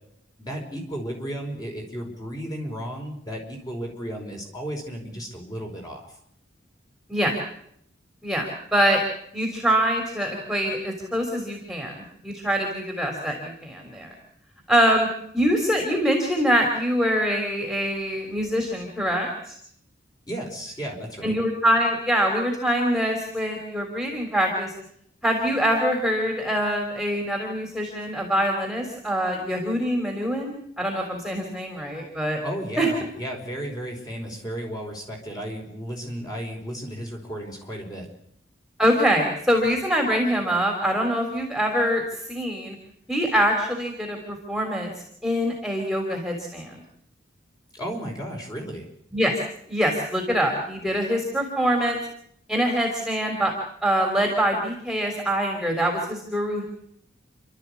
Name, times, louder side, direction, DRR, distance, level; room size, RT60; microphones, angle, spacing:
voice 1, 0.4-6.1 20.3-21.3 32.4-38.1 47.7-48.9, equal, 20° left, 1 dB, 5.0 m, -34 dB
voice 2, 8.2-9.0 9.3-14.1 14.7-15.1 15.3-19.5 21.2-24.7 25.2-32.4 32.8-32.9 38.8-42.8 43.1-44.9 45.2-46.8 49.1-49.3 49.7-52.0 52.5-56.6, equal, ahead, 2 dB, 3.3 m, -24 dB
29.5 x 12.5 x 8.4 m, 0.71 s
head